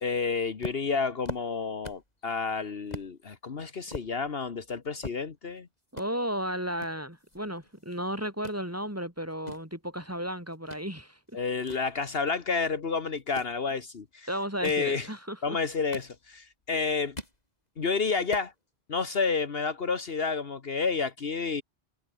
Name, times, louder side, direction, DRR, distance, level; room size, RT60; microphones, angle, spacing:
voice 1, 0.0-5.7 11.3-14.3 14.6-15.1 15.4-17.2 17.8-18.5 18.9-21.6, left 4 dB, 60° left, 1.6 m, -30 dB
sound 1, 0.6-2.2 2.5-2.6 2.9-3.1 3.6-5.6 5.9-6.1 6.8-8.6 9.2-10.9 11.3-12.6 13.2-13.6 14.4-14.9 15.6-16.5 16.9-17.4 17.8-17.9 18.1-18.5, left 1 dB, 40° left, 5.4 m, -42 dB
voice 2, 5.9-11.2 14.3-15.6, equal, 15° right, 4.3 m, -34 dB
omnidirectional pair, 1.1 m